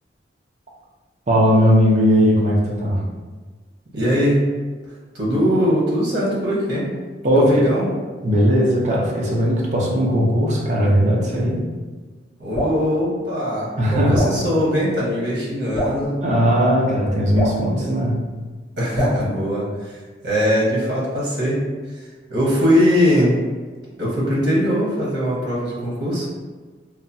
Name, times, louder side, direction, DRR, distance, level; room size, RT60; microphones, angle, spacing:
voice 1, 1.3-3.0 7.2-7.7 8.2-11.6 13.8-14.2 16.2-18.3, equal, 40° right, -3 dB, 0.6 m, -18 dB
voice 2, 3.9-4.4 5.1-6.9 7.3-7.9 12.4-16.1 18.8-20.0 20.2-21.6 22.3-23.4 24.0-26.3, equal, 80° right, -5 dB, 1.0 m, -20 dB
Drip, 12.5-12.8 14.1-14.4 15.7-16.0 17.3-17.6 18.9-19.2, left 1 dB, 10° left, 0.8 m, -24 dB
2.9 x 2.2 x 2.6 m, 1.4 s
head